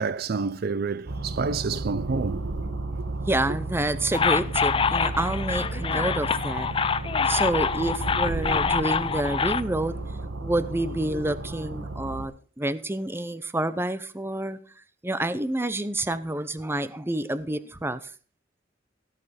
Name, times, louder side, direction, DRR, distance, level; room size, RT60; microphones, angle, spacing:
voice 1, 0.0-2.5 3.0-3.1, right 4 dB, 55° right, 0.5 m, -28 dB
sound 1, 1.1-12.3, right 2 dB, 90° right, 1.7 m, -33 dB
voice 2, 3.2-6.7 7.3-10.0 10.4-18.1, right 1 dB, 15° right, 0.6 m, -28 dB
sound 2, 4.1-9.6, left 6 dB, 30° left, 0.4 m, -26 dB
17.5 x 6.6 x 4.2 m
head